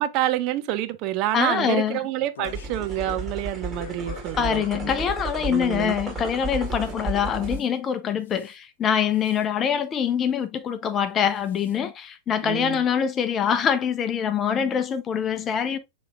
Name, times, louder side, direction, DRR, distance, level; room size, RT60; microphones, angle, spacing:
voice 1, 0.0-4.9 5.4-6.0 12.4-12.8, right 14 dB, 45° right, 0.5 m, -28 dB
voice 2, 1.3-2.0 4.4-15.8, left 8 dB, 30° left, 0.7 m, -24 dB
sound 1, 2.1-3.3 3.7-4.4 5.0-5.2 6.6-6.9 7.3-7.7 8.2-8.6 9.1-9.4 11.3-11.8, left 6 dB, 70° left, 0.6 m, -44 dB
sound 2, 2.4-7.6, right 2 dB, 15° right, 2.1 m, -33 dB
6.8 x 3.0 x 2.4 m
figure-of-eight pair, 90°, 0 cm